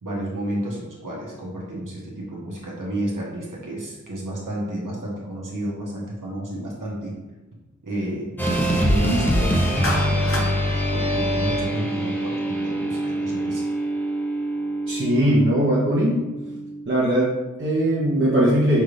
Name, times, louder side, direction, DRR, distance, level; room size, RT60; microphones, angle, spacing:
voice 1, 0.0-7.2 7.8-8.4 8.7-9.6 10.0-13.7, right 1 dB, 75° right, -3 dB, 1.1 m, -31 dB
sound 1, 8.4-16.7, equal, 5° left, 0.8 m, -24 dB
Clapping, 9.8-10.5, left 1 dB, 45° left, 0.7 m, -27 dB
voice 2, 14.9-16.2 16.9-18.8, right 1 dB, 40° right, -7 dB, 0.8 m, -20 dB
5.5 x 2.5 x 3.3 m, 1.1 s
wide cardioid pair, 60°, 32 cm